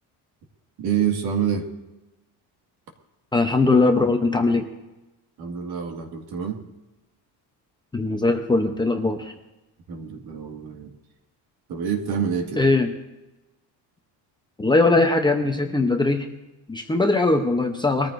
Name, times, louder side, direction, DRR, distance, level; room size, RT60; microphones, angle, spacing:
voice 1, 0.8-1.7 5.4-6.6 9.9-10.9 11.7-12.6, right 7 dB, 65° right, 3 dB, 2.1 m, -27 dB
voice 2, 3.3-4.6 7.9-9.3 12.6-12.9 14.6-16.3 16.7-18.1, left 3 dB, 10° left, 4 dB, 0.7 m, -20 dB
22.5 x 14.0 x 2.6 m, 1.0 s
cardioid pair, 160°, 41 cm